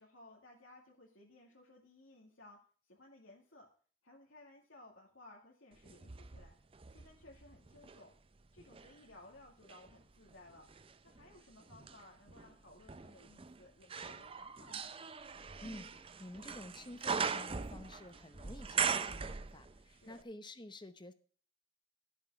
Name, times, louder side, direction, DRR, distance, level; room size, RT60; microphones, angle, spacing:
voice 1, 0.0-2.6 2.9-3.7 4.0-6.5 6.9-8.1 8.5-10.7 11.0-14.9 19.8-20.2, left 2 dB, 75° left, -2 dB, 2.0 m, -59 dB
sound 1, 5.8-8.0 8.6-19.9 20.2-20.3, right 6 dB, 25° right, 0.5 m, -41 dB
voice 2, 15.6-21.1, left 1 dB, 20° left, 11 dB, 0.8 m, -50 dB
12.5 x 7.3 x 4.6 m, 0.42 s
head